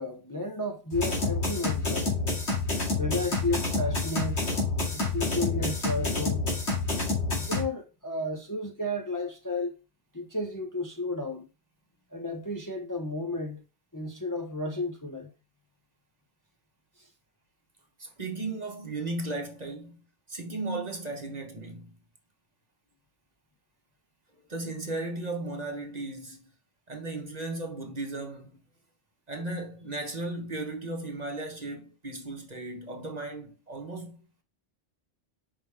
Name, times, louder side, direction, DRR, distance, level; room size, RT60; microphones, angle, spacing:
voice 1, 0.0-2.2 3.0-4.4 4.9-6.4 7.4-9.7 10.1-11.4 12.1-13.6 13.9-15.3 17.0-17.1, left 2 dB, 20° left, 0.9 m, -33 dB
sound 1, 0.9-7.6, left 3 dB, 70° left, 2.7 m, -28 dB
voice 2, 18.0-20.0 20.3-21.9 24.5-26.4 26.9-28.6 29.3-34.2, right 2 dB, 35° right, 1.2 m, -36 dB
5.6 x 5.4 x 3.4 m
omnidirectional pair, 1.2 m